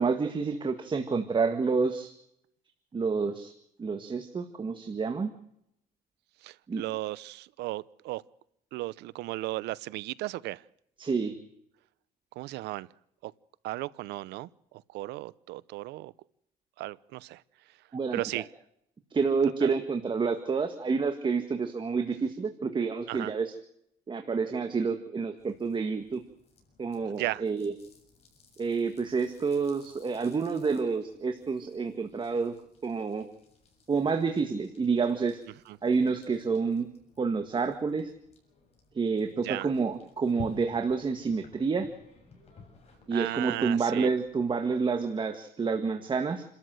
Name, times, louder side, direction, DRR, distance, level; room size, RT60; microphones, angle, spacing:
voice 1, 0.0-2.1 2.9-3.5 3.8-5.3 6.7-6.8 11.0-11.4 17.9-18.2 19.1-23.5 24.1-26.2 26.8-27.7 28.6-32.5 32.8-33.3 33.9-35.4 35.8-36.9 37.2-38.1 38.9-41.9 43.1-46.4, right 5 dB, 30° right, 7 dB, 1.8 m, -28 dB
voice 2, 6.4-8.2 8.7-10.6 12.3-12.9 13.2-13.3 13.6-16.1 16.8-17.4 18.1-18.5 19.6-19.7 23.1-23.3 27.1-27.4 35.7-35.8 39.4-39.7 43.1-44.1, right 17 dB, 85° right, 20 dB, 0.7 m, -35 dB
sound 1, 25.4-44.8, left 4 dB, 40° left, 7.2 m, -54 dB
29.0 x 13.0 x 7.7 m, 0.75 s
cardioid pair, 110°, 17 cm